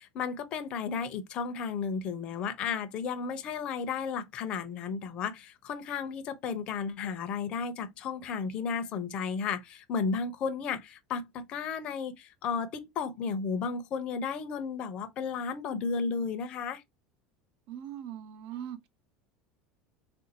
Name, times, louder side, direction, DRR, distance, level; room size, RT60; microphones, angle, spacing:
voice 1, 0.0-16.8, left 5 dB, 45° left, 0.7 m, -33 dB
voice 2, 17.7-18.9, right 10 dB, 65° right, 0.8 m, -40 dB
3.6 x 2.6 x 2.7 m
supercardioid pair, 115°, 2 cm